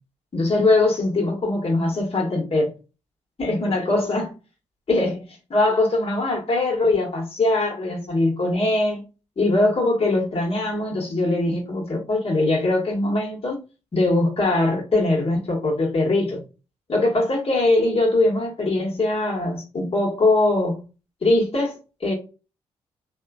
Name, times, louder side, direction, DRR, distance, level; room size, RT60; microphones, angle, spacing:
voice 1, 0.3-2.7 3.4-4.3 4.9-5.2 5.5-9.0 9.4-13.6 13.9-16.4 16.9-20.8 21.2-22.1, left 2 dB, 45° left, 1.2 m, -21 dB
3.0 x 2.2 x 2.3 m
hypercardioid pair, 40°, 15 cm